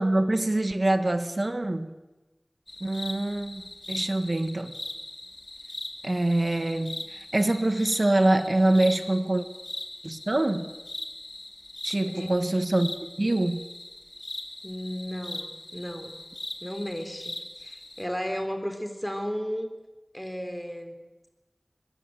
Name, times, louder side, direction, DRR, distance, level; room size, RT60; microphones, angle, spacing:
voice 1, 0.0-2.0 2.8-3.6 3.9-4.7 6.0-9.5 10.0-10.7 11.8-12.9 13.2-13.7, right 1 dB, 60° right, 9 dB, 1.6 m, -25 dB
sound 1, 2.7-18.1, left 1 dB, 60° left, 3.1 m, -40 dB
voice 2, 12.1-12.6 14.6-16.2 16.6-19.7 20.1-21.0, equal, 5° left, 6 dB, 3.8 m, -34 dB
24.0 x 21.5 x 8.0 m, 1.1 s
wide cardioid pair, 40°, 0 cm